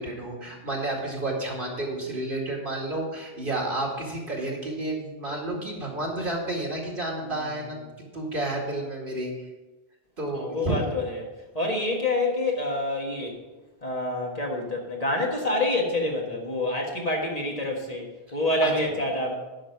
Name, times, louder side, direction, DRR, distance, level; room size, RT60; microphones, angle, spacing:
voice 1, 0.0-9.5 10.2-10.8 18.6-18.7, right 2 dB, 55° right, -1 dB, 2.3 m, -31 dB
voice 2, 10.3-11.3 11.5-13.4 13.8-19.3, left 2 dB, 40° left, -1 dB, 1.7 m, -27 dB
10.5 x 6.2 x 5.9 m, 1.1 s
omnidirectional pair, 1.1 m